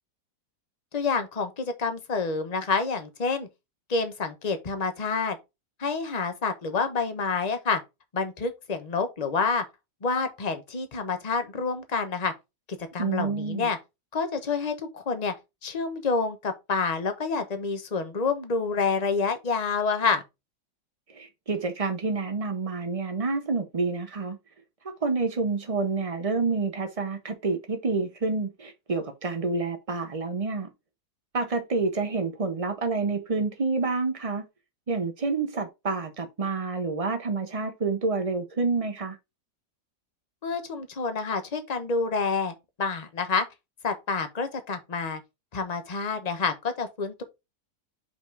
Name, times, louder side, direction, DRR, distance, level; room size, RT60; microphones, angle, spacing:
voice 1, 0.9-3.5 3.9-5.4 5.8-7.8 8.1-9.6 10.0-12.3 12.8-13.8 14.1-15.3 15.6-20.2 40.4-42.5 42.8-43.4 43.8-45.2 45.5-47.2, left 4 dB, 30° left, 0.8 m, -28 dB
voice 2, 13.0-13.7 21.1-24.4 25.0-30.7 31.3-34.5 34.9-39.2, right 4 dB, 65° right, 0.3 m, -28 dB
5.3 x 4.2 x 4.6 m
omnidirectional pair, 1.9 m